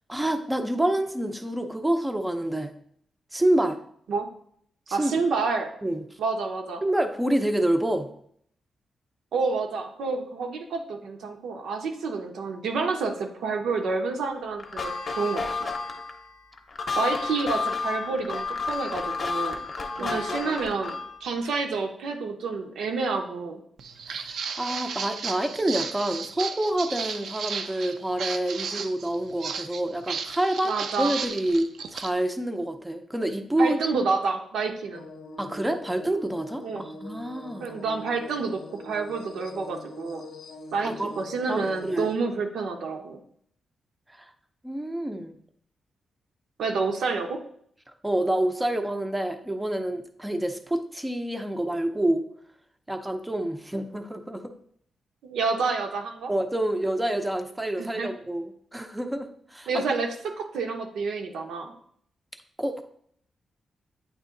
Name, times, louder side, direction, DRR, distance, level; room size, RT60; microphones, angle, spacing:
voice 1, 0.1-2.7 3.3-3.8 4.9-5.2 5.8-6.0 6.8-8.1 20.0-20.6 24.1-33.8 35.4-37.8 40.8-41.1 41.5-42.1 44.2-44.3 44.6-45.3 48.0-52.2 52.9-54.5 56.3-59.8 62.6-62.8, right 1 dB, 10° right, 7 dB, 0.5 m, -27 dB
voice 2, 4.9-5.7 6.2-6.8 9.3-15.5 17.0-19.6 20.0-23.6 30.6-31.1 33.6-35.0 36.6-36.8 37.6-40.2 40.7-40.9 41.2-43.2 46.6-47.4 55.2-56.3 57.8-58.1 59.7-60.1 60.4-61.7, right 4 dB, 90° right, 3 dB, 0.9 m, -29 dB
sound 1, 14.6-21.2, left 4 dB, 30° left, 0.8 m, -31 dB
Walk footsteps, 23.8-32.1, right 6 dB, 65° right, 0.5 m, -34 dB
sound 2, 34.9-42.1, left 2 dB, 70° left, 0.6 m, -43 dB
8.9 x 3.0 x 3.8 m, 0.65 s
wide cardioid pair, 170°, 0 cm